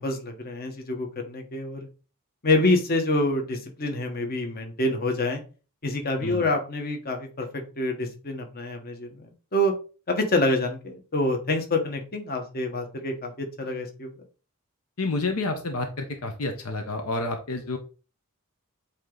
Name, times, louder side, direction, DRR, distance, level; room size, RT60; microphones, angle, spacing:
voice 1, 0.0-1.9 2.4-5.4 5.8-9.2 9.5-9.7 10.1-14.1, left 1 dB, 45° left, 4 dB, 1.2 m, -27 dB
voice 2, 15.0-17.8, left 2 dB, 75° left, 5 dB, 0.9 m, -29 dB
8.3 x 3.0 x 3.8 m, 0.35 s
head